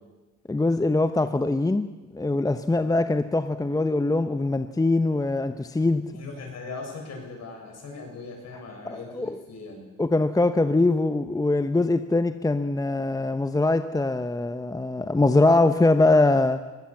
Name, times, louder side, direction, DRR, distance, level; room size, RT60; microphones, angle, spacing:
voice 1, 0.5-6.0 8.8-9.4 10.0-16.6, left 2 dB, 10° left, 9 dB, 0.8 m, -22 dB
voice 2, 6.1-9.8, left 3 dB, 60° left, 1 dB, 7.4 m, -39 dB
21.0 x 17.0 x 7.3 m, 1.2 s
cardioid pair, 90°, 30 cm